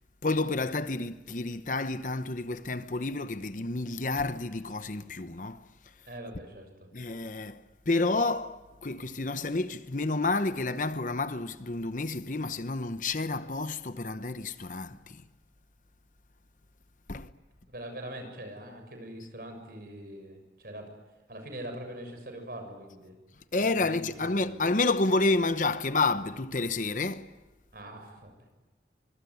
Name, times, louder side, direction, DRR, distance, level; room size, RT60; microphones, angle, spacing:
voice 1, 0.2-5.6 6.9-7.6 7.9-15.2 17.1-17.3 23.5-27.3, left 3 dB, 45° left, 0.9 m, -30 dB
voice 2, 6.0-6.7 17.7-20.9 21.3-23.2 23.7-24.6 27.7-28.3, right 1 dB, 55° right, 6.8 m, -42 dB
25.0 x 23.5 x 9.5 m
head